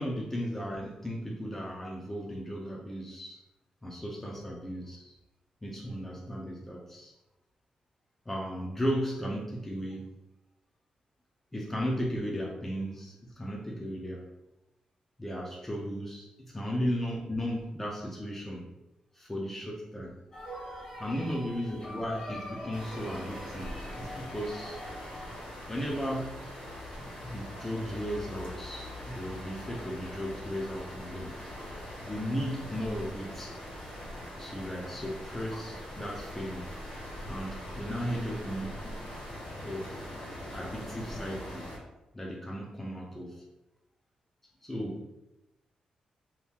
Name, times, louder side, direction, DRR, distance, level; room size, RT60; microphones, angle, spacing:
voice 1, 0.0-3.4 3.8-5.1 5.6-7.1 8.3-10.1 11.5-14.3 15.2-18.6 19.1-20.1 21.0-24.8 25.7-26.4 27.0-31.3 32.0-33.6 34.4-36.7 37.3-39.1 39.6-40.1 40.5-41.7 42.1-43.4 44.6-45.0, equal, 10° left, -3 dB, 0.5 m, -35 dB
sound 1, 20.3-25.3, left 1 dB, 25° left, 1.0 m, -44 dB
sound 2, 22.7-41.8, left 1 dB, 85° left, 1.3 m, -42 dB
2.8 x 2.7 x 3.5 m, 0.95 s
cardioid pair, 115°, 2 cm